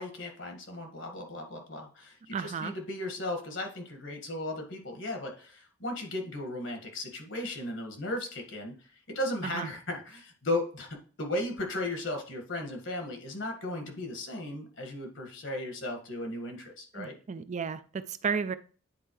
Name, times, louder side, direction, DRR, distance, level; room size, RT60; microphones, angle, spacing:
voice 1, 0.0-17.2, left 1 dB, 65° left, 1.7 m, -36 dB
voice 2, 2.3-2.7 9.5-9.7 16.9-18.5, right 6 dB, 35° right, 0.4 m, -33 dB
9.4 x 4.4 x 3.1 m
head